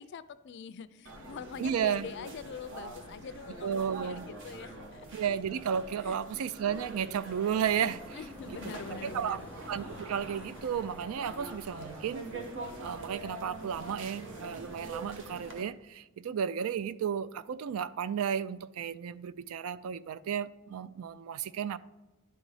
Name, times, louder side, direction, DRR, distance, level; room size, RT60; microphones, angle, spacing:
voice 1, 0.0-5.1 6.0-6.2 8.1-9.5, left 6 dB, 55° left, 0.3 m, -44 dB
sound 1, 1.1-15.6, right 2 dB, 55° right, 1.0 m, -45 dB
voice 2, 1.6-2.1 3.6-4.2 5.1-8.2 8.5-9.4 9.7-12.3 12.8-21.8, right 8 dB, 75° right, 0.3 m, -33 dB
sound 2, 7.3-15.3, equal, 10° right, 0.9 m, -54 dB
Waves surf, 8.1-13.6, left 1 dB, 10° left, 0.6 m, -55 dB
10.5 x 3.9 x 4.8 m
head